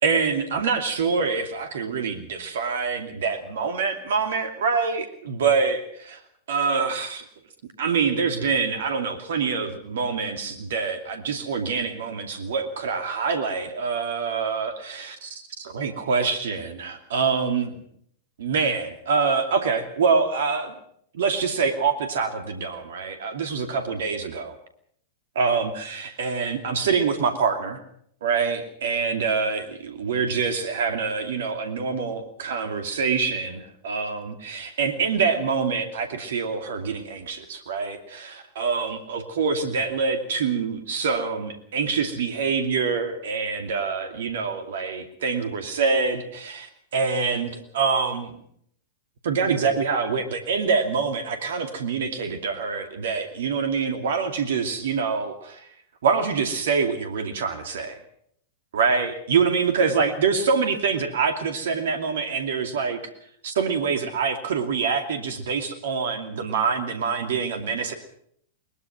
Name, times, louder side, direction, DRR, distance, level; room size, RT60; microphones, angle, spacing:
voice 1, 0.0-6.2 6.5-7.3 7.8-17.8 18.4-20.7 21.1-24.6 25.3-27.8 28.2-46.7 46.9-48.4 49.2-55.7 56.0-58.0 58.7-63.0 63.4-67.9, right 5 dB, 65° right, 7 dB, 2.6 m, -25 dB
21.5 x 21.0 x 6.0 m, 0.67 s
figure-of-eight pair, 100°, 0 cm